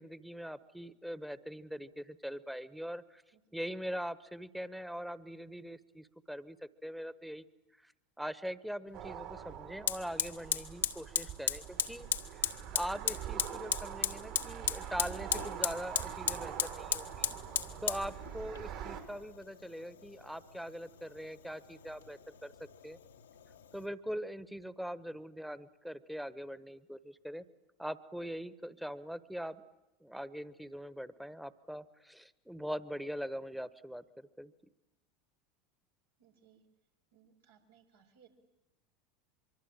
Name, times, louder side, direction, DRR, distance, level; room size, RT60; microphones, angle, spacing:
voice 1, 0.0-3.2 3.5-7.4 7.8-7.9 8.2-17.3 17.8-22.5 22.8-23.0 23.7-27.4 27.8-29.6 30.0-34.5, equal, 5° right, 15 dB, 1.3 m, -42 dB
Fire, 8.9-9.0 9.9-23.9, left 8 dB, 85° left, 1.4 m, -37 dB
sound 1, 8.9-19.0, right 10 dB, 60° right, 4.4 m, -44 dB
voice 2, 17.3-17.6 36.2-36.6 37.1-38.3, right 8 dB, 85° right, 1 dB, 5.2 m, -64 dB
24.5 x 24.5 x 9.0 m, 0.97 s
hypercardioid pair, 85°, 0 cm